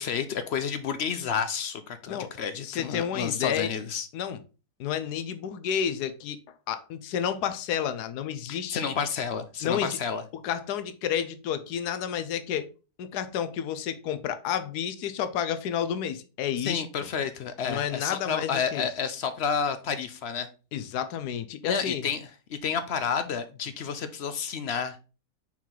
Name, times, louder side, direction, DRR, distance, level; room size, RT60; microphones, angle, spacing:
voice 1, 0.0-4.1 8.5-10.2 16.6-20.5 21.6-25.0, left 6 dB, 65° left, 0.6 m, -30 dB
voice 2, 2.6-3.7 4.1-4.4 4.8-6.4 6.7-8.9 9.6-10.0 10.4-12.7 13.0-16.8 17.7-18.9 20.7-22.0, left 9 dB, 85° left, 1.2 m, -30 dB
5.8 x 4.5 x 3.7 m
omnidirectional pair, 1.7 m